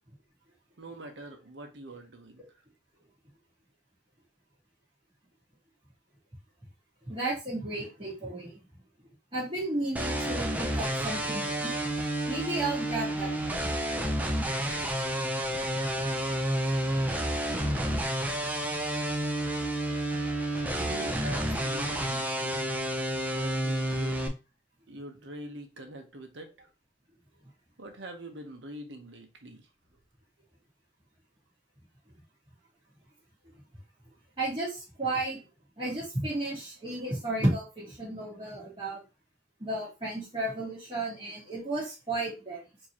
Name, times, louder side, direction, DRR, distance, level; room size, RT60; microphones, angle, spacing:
voice 1, 0.8-2.6 20.7-22.8 23.3-24.2 24.9-26.7 27.8-29.7, right 1 dB, 85° right, 1.0 m, -44 dB
voice 2, 7.0-8.5 9.3-11.7 12.3-13.7 34.4-35.4 35.8-39.0 39.6-42.6, right 2 dB, 30° right, 1.6 m, -33 dB
sound 1, 10.0-24.3, right 1 dB, 10° right, 0.5 m, -30 dB
4.6 x 2.9 x 2.9 m
head